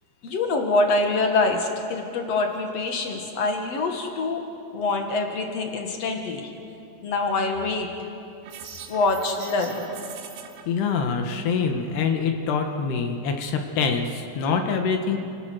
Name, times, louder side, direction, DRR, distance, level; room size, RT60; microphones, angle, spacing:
voice 1, 0.2-4.4 4.7-6.5 7.0-7.9 8.9-9.8, left 3 dB, 55° left, 3 dB, 1.9 m, -25 dB
sound 1, 8.4-10.6, right 7 dB, 85° right, 3.9 m, -41 dB
voice 2, 10.7-15.2, left 5 dB, 70° left, 4 dB, 3.3 m, -25 dB
30.0 x 18.0 x 6.4 m, 2.8 s
omnidirectional pair, 5.2 m